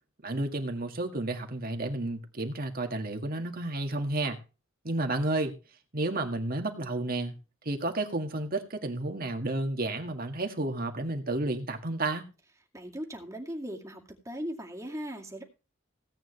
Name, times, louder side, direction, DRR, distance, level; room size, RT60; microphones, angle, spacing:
voice 1, 0.2-4.4 4.8-5.5 5.9-7.4 7.7-12.2, right 2 dB, 45° right, 2.0 m, -31 dB
voice 2, 12.7-14.0 14.3-15.4, equal, 15° right, 2.3 m, -38 dB
17.0 x 8.9 x 3.3 m
head